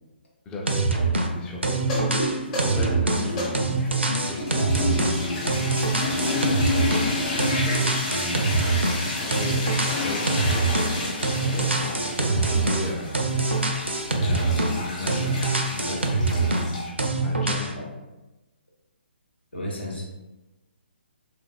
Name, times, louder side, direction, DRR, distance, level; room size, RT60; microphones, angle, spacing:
voice 1, 0.5-1.9 2.6-5.7 6.1-7.2 7.5-13.3 14.1-17.7, left 1 dB, 15° left, -2 dB, 0.4 m, -36 dB
sound 1, 0.7-1.3 1.6-7.1 7.4-9.0 9.3-11.0 11.2-14.8 15.1-16.7 17.0-17.7, right 3 dB, 85° right, 0.4 m, -24 dB
sound 2, 1.8-16.9, left 2 dB, 35° left, 0.9 m, -30 dB
voice 2, 19.5-20.0, left 1 dB, 75° left, -3 dB, 0.9 m, -33 dB
3.2 x 2.5 x 2.2 m, 1.0 s
figure-of-eight pair, 135°, 6 cm